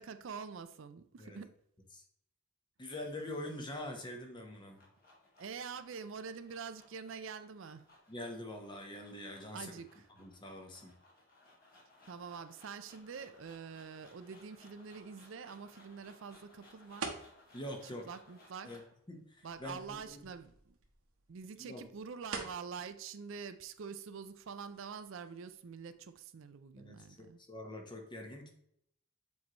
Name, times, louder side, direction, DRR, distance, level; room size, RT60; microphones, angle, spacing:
voice 1, 0.0-1.5 5.4-7.9 9.5-10.0 12.1-17.1 17.8-18.7 19.4-20.7 21.3-27.4, right 6 dB, 60° right, 0.4 m, -46 dB
voice 2, 2.8-4.8 8.1-9.8 10.2-10.9 17.5-18.1 18.6-18.8 19.1-20.2 21.6-21.8 26.8-28.5, left 1 dB, 20° left, 1.0 m, -44 dB
sound 1, 4.6-19.0, left 2 dB, 40° left, 2.0 m, -63 dB
sound 2, 12.9-26.1, right 4 dB, 85° right, 1.2 m, -51 dB
7.3 x 4.6 x 3.0 m
head